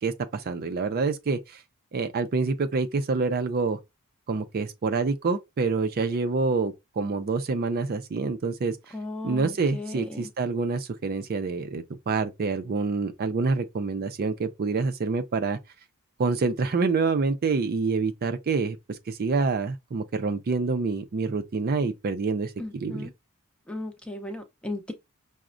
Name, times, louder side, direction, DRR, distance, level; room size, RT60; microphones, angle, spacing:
voice 1, 0.0-1.6 1.9-3.8 4.3-8.9 9.2-15.6 16.2-23.1, right 4 dB, 45° right, 0.4 m, -27 dB
voice 2, 8.9-10.3 22.6-23.1 23.7-24.9, left 2 dB, 5° left, 0.5 m, -36 dB
5.9 x 2.1 x 2.5 m
head